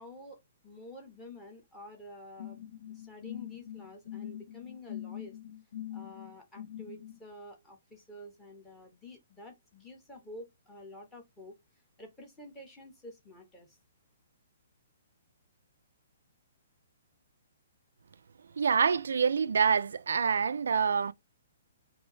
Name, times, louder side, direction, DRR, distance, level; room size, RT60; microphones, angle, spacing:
voice 1, 0.0-5.4 5.9-11.6 12.0-13.8, left 1 dB, 10° left, 1.1 m, -49 dB
sound 1, 2.4-7.2, left 11 dB, 70° left, 1.0 m, -43 dB
voice 2, 18.6-21.1, right 6 dB, 85° right, 0.3 m, -26 dB
4.3 x 2.7 x 3.1 m
hypercardioid pair, 170°, 0 cm